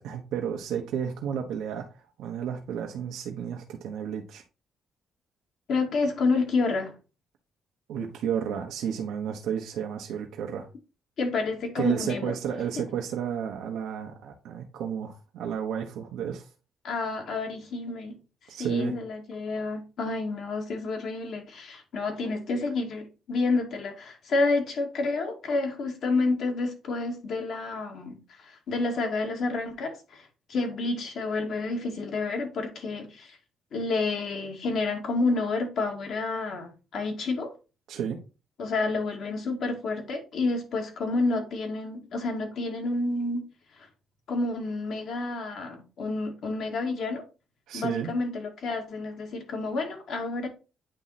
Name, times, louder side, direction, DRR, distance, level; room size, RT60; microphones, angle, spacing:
voice 1, 0.0-4.4 7.9-10.7 11.7-16.5 18.5-18.9 37.9-38.2 47.7-48.1, right 8 dB, 85° right, 1.0 m, -32 dB
voice 2, 5.7-6.9 11.2-12.3 16.8-18.2 18.6-33.4 33.7-37.5 38.6-43.4 44.3-47.2 47.7-50.5, left 3 dB, 70° left, 2.0 m, -29 dB
8.9 x 3.1 x 4.1 m
cardioid pair, 90°, 0 cm